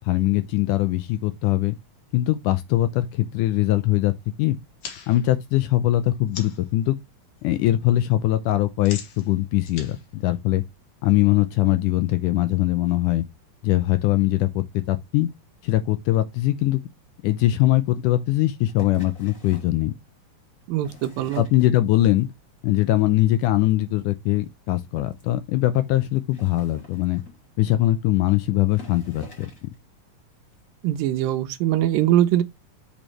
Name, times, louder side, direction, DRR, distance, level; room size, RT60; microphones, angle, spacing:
voice 1, 0.1-1.8 2.1-4.1 4.4-4.6 5.1-7.0 7.4-10.6 11.0-13.3 13.6-15.3 15.6-16.8 17.2-19.9 21.4-22.3 22.6-27.2 27.6-29.7, left 15 dB, 80° left, 1.9 m, -21 dB
sound 1, 4.6-6.7 7.1-7.6 7.8-11.1, left 6 dB, 60° left, 2.8 m, -42 dB
sound 2, 18.7-19.8 20.6-22.2 22.6-23.0 23.3-23.4 23.7-23.8 24.0-24.1 24.4-24.5 25.1-25.2 26.2-27.5 28.2-28.3 28.7-29.7 30.5-30.6, left 2 dB, 25° left, 2.5 m, -46 dB
voice 2, 20.7-21.4 30.8-32.4, right 13 dB, 80° right, 2.4 m, -22 dB
6.4 x 6.3 x 3.1 m
omnidirectional pair, 4.1 m